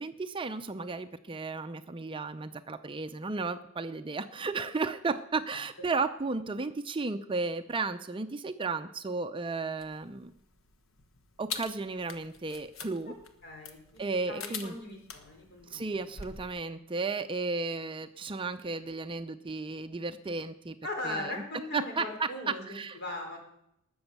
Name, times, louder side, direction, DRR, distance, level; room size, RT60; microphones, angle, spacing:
voice 1, 0.0-10.3 11.4-13.1 14.0-14.8 15.7-20.8 21.0-21.4 21.7-23.0, right 3 dB, 25° right, 9 dB, 0.5 m, -34 dB
sound 1, 9.8-16.5, left 5 dB, 65° left, 1.3 m, -45 dB
voice 2, 13.4-16.0 20.8-22.6 22.9-23.4, left 2 dB, 50° left, 1 dB, 4.2 m, -39 dB
19.5 x 7.1 x 6.7 m, 0.79 s
head